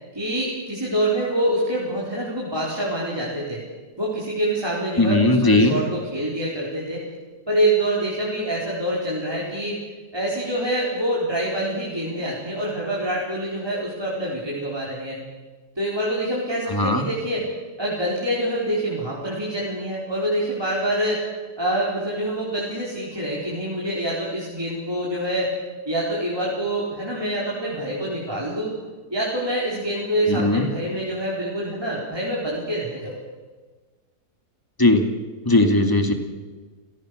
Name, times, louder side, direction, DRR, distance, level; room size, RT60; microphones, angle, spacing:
voice 1, 0.1-3.6 4.0-7.0 7.5-9.8 10.1-15.2 15.8-17.5 17.8-21.2 21.6-25.5 25.9-28.7 29.1-33.2, right 1 dB, 15° right, -6 dB, 4.3 m, -26 dB
voice 2, 5.0-5.8 16.7-17.1 30.3-30.7 34.8-35.1 35.5-36.1, left 2 dB, 15° left, 6 dB, 2.1 m, -18 dB
29.0 x 17.5 x 6.5 m, 1.4 s
omnidirectional pair, 1.7 m